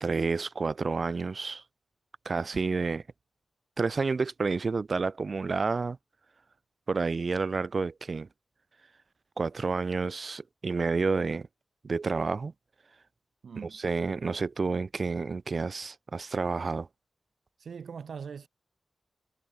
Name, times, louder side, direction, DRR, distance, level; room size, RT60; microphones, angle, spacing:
voice 1, 0.0-1.6 2.3-3.0 3.8-6.0 6.9-8.3 9.4-11.5 11.8-12.5 13.7-16.9, right 4 dB, 45° right, 2.1 m, -29 dB
voice 2, 13.4-13.8 17.6-18.5, right 6 dB, 90° right, 1.4 m, -41 dB
wide cardioid pair, 150°, 0 cm